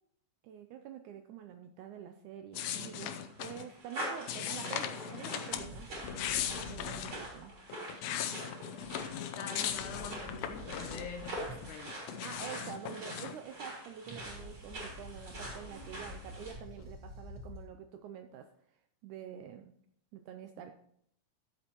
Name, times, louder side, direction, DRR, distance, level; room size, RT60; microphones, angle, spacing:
voice 1, 0.4-5.9 6.6-7.5 12.2-19.7 20.1-20.7, right 9 dB, 80° right, 7 dB, 1.8 m, -47 dB
sound 1, 2.5-3.7 4.3-5.7 6.0-7.2 7.7-11.3 11.6-13.3, left 9 dB, 85° left, 1.5 m, -38 dB
sound 2, 2.7-16.5, right 1 dB, 40° right, 4.3 m, -45 dB
sound 3, 5.5-7.6 9.7-11.9 14.0-17.7, left 1 dB, 5° right, 2.9 m, -49 dB
voice 2, 9.2-11.9, left 5 dB, 70° left, 5 dB, 2.2 m, -45 dB
13.0 x 7.8 x 2.9 m, 0.69 s
omnidirectional pair, 3.9 m